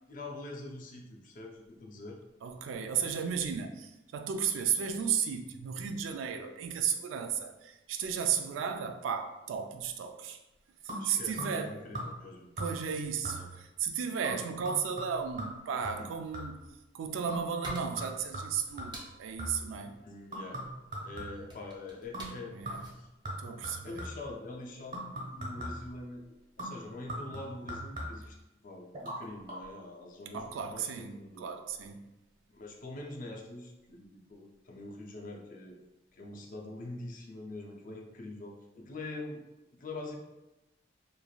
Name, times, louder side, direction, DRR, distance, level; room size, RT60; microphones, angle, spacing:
voice 1, 0.1-2.2 10.9-12.5 13.4-13.5 16.0-16.1 19.9-20.6 21.0-22.5 22.8-23.1 23.8-25.0 25.3-28.4 28.6-31.5 32.5-35.7 36.1-39.4 39.7-40.2, left 2 dB, 45° left, 0.4 m, -44 dB
voice 2, 2.4-10.4 10.8-11.9 12.6-16.6 16.9-20.0 22.5-22.8 23.4-23.9 30.3-32.1, right 7 dB, 80° right, 0.3 m, -34 dB
sound 1, 10.9-11.7 11.9-12.3 12.6-13.0 13.2-13.7 14.2-16.7 17.3-19.7 20.3-21.6 22.1-22.4 22.6-24.3 24.9-25.9 26.6-28.4 28.9-29.2 29.5-29.6, right 1 dB, 50° right, 1.1 m, -41 dB
sound 2, 17.0-24.2, right 1 dB, 25° right, 0.5 m, -51 dB
3.1 x 2.4 x 2.3 m
head